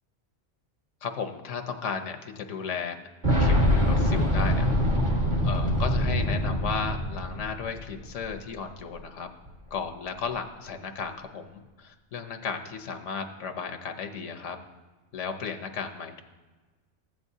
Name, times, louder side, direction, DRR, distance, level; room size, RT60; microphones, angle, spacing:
voice 1, 1.0-3.0 3.4-4.7 5.4-9.3 9.7-14.6 15.1-16.2, left 6 dB, 80° left, 5 dB, 1.1 m, -34 dB
Boom, 3.2-8.3 9.5-9.6, equal, 40° right, 1.9 m, -24 dB
14.5 x 9.1 x 2.7 m, 1.3 s
omnidirectional pair, 1.2 m